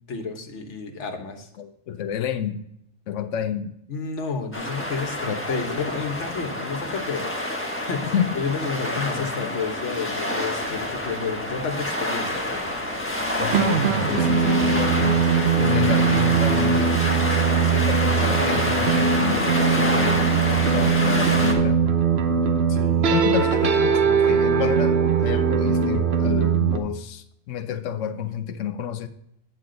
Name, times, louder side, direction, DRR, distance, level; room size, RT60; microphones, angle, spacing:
voice 1, 0.1-1.5 3.9-7.3 7.8-12.7 22.7-23.1, left 5 dB, 70° left, 1.4 m, -31 dB
voice 2, 1.6-2.7 3.1-3.8 5.2-5.4 8.0-8.3 8.7-9.5 10.7-10.8 13.4-15.2 15.6-16.9 17.6-21.8 23.1-29.1, left 9 dB, 85° left, 1.0 m, -30 dB
sound 1, 4.5-21.5, left 1 dB, 10° left, 1.2 m, -27 dB
sound 2, 13.5-26.8, right 6 dB, 60° right, 1.0 m, -21 dB
9.3 x 7.8 x 3.8 m
omnidirectional pair, 1.2 m